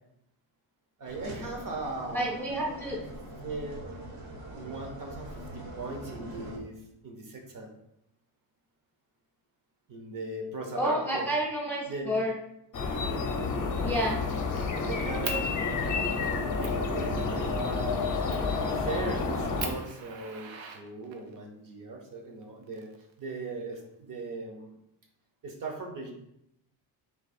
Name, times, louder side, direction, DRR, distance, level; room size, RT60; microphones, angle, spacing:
voice 1, 1.0-2.4 3.4-3.8 4.4-7.7 9.9-11.3 11.9-12.2 14.6-15.5 16.5-17.9 18.7-22.9 23.2-24.7 25.4-26.1, right 3 dB, 45° right, 3 dB, 0.8 m, -39 dB
sound 1, 1.0-6.6, right 1 dB, 70° right, 1.2 m, -42 dB
voice 2, 2.1-3.0 10.8-12.3 13.8-14.2, right 1 dB, 5° left, -3 dB, 0.5 m, -29 dB
sound 2, 12.7-19.7, left 4 dB, 45° left, 0.7 m, -30 dB
Fire, 13.1-13.4 13.7-14.7 15.2-15.4 16.0-16.1 16.6-16.8 18.3-18.6 19.1-19.2 19.6-21.4 22.4-23.4, right 6 dB, 90° right, 0.7 m, -40 dB
3.5 x 2.9 x 4.1 m, 0.78 s
cardioid pair, 160°, 45 cm